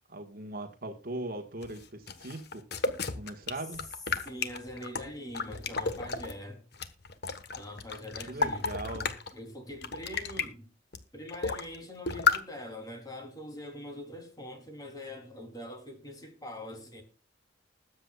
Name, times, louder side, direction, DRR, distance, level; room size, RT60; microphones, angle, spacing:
voice 1, 0.1-2.6 3.1-3.9 8.3-9.1, right 2 dB, 50° right, 1.6 m, -39 dB
sound 1, 1.6-6.3 6.7-9.3 9.7-10.5 10.9-11.0 11.3-11.8 12.1-12.4, left 5 dB, 55° left, 1.3 m, -32 dB
voice 2, 4.2-6.6 7.5-8.7 9.3-10.7 11.1-17.0, left 1 dB, 20° left, 3.3 m, -43 dB
20.5 x 8.2 x 2.4 m
head